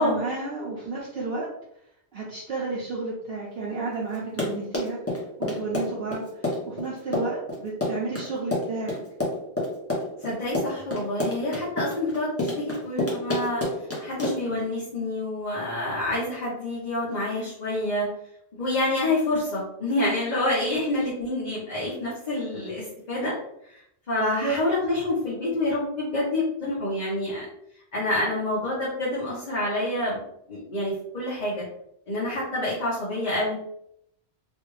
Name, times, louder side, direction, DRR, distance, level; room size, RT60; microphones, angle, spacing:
voice 1, 0.0-1.5 2.1-9.0 24.2-24.5, right 3 dB, 60° right, -5 dB, 0.8 m, -32 dB
Run, 4.1-14.6, left 1 dB, 15° left, 0.7 m, -28 dB
voice 2, 10.2-13.6 14.0-18.1 18.5-23.4 23.6-23.8 24.1-27.5 27.9-30.2 30.5-31.6 32.1-33.5, left 1 dB, 40° left, -8 dB, 1.0 m, -27 dB
3.3 x 2.3 x 3.1 m, 0.75 s
omnidirectional pair, 1.1 m